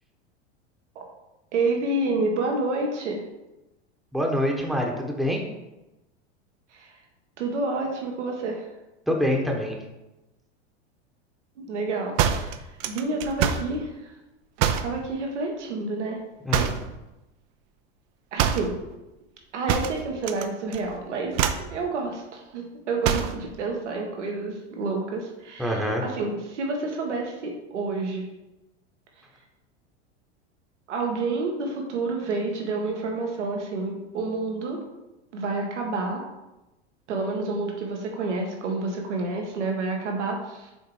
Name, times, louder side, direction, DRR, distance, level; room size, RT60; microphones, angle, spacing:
voice 1, 1.5-3.2 6.7-7.0 7.4-8.7 11.6-14.1 14.8-16.2 18.3-18.7 19.5-28.3 30.9-34.8 35.3-36.2 37.1-40.7, right 3 dB, 85° right, 1 dB, 1.6 m, -29 dB
voice 2, 4.1-5.4 9.1-9.7 16.4-16.8 25.6-26.0, left 1 dB, ahead, 0 dB, 1.1 m, -25 dB
sound 1, 12.2-13.7 14.6-15.0 16.5-16.9 18.4-18.7 19.7-20.5 20.7-21.0 21.3-21.7 23.0-23.4, right 9 dB, 50° right, 0.7 m, -25 dB
7.0 x 3.9 x 4.9 m, 0.98 s
hypercardioid pair, 105°, 35 cm